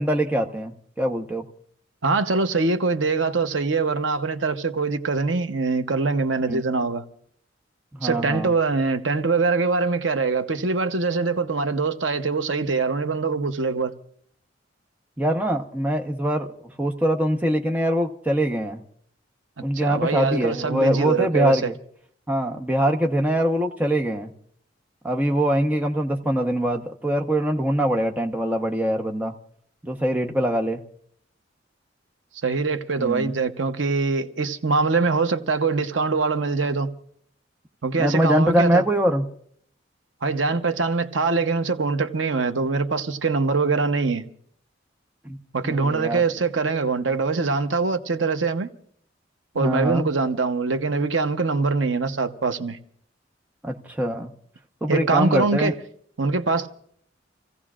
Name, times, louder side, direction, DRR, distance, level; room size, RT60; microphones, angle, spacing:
voice 1, 0.0-1.4 6.5-6.6 7.9-8.5 15.2-16.5 16.8-18.8 19.6-21.8 22.3-24.3 25.0-29.3 29.8-30.8 33.0-33.3 38.0-39.2 45.2-45.4 45.6-46.2 49.5-50.1 53.6-54.3 54.8-55.7, equal, 10° right, 1.0 m, -23 dB
voice 2, 2.0-7.0 8.0-13.9 19.7-21.7 32.4-36.9 37.8-38.8 40.2-44.3 45.5-48.7 49.5-52.8 54.9-55.7 56.2-56.7, right 4 dB, 90° right, 0.9 m, -23 dB
29.5 x 16.0 x 2.5 m
head